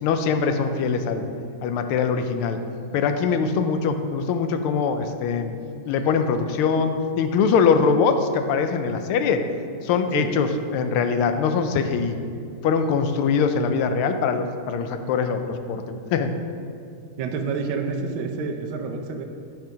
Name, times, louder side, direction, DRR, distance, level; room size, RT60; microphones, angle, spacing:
voice 1, 0.0-1.3 1.6-2.6 2.9-5.5 5.9-9.4 9.8-12.1 12.6-16.3, left 5 dB, 85° left, 8 dB, 1.5 m, -22 dB
voice 2, 17.2-19.2, right 5 dB, 75° right, 3 dB, 1.4 m, -28 dB
9.3 x 4.7 x 5.1 m, 2.4 s
omnidirectional pair, 2.3 m